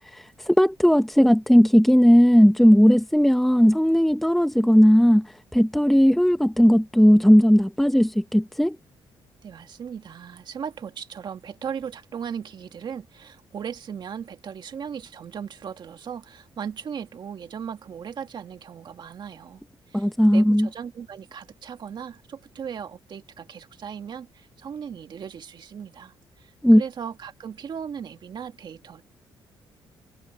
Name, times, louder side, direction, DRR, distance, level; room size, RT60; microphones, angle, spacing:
voice 1, 0.1-8.8 19.9-20.7 26.6-26.8, equal, ahead, 0.9 m, -17 dB
voice 2, 9.4-19.6 19.9-29.0, right 7 dB, 55° right, 2.0 m, -37 dB
cardioid pair, 110°, 9 cm